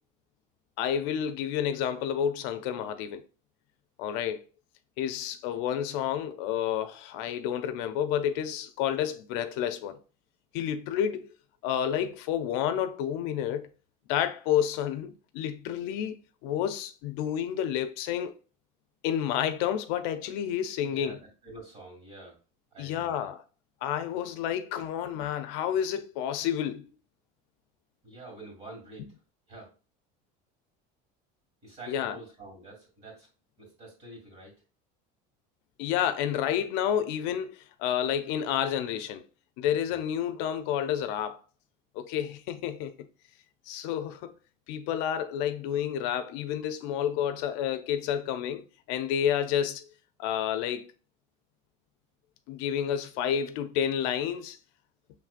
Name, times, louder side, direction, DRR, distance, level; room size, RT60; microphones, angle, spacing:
voice 1, 0.8-3.2 4.0-4.4 5.0-10.0 10.5-11.3 11.6-13.7 14.1-16.2 16.4-18.3 19.0-21.2 22.8-23.4 23.8-26.9 31.9-32.2 35.8-39.2 39.6-41.4 42.0-43.1 43.7-44.3 44.7-49.9 50.2-50.9 52.5-54.6, left 9 dB, 70° left, 0.5 m, -30 dB
voice 2, 20.8-22.4 22.7-23.3 28.0-29.0 29.5-29.7 31.6-33.3 33.6-34.5 39.9-40.0, right 2 dB, 35° right, 2.2 m, -47 dB
6.0 x 3.2 x 2.4 m
cardioid pair, 170°, 19 cm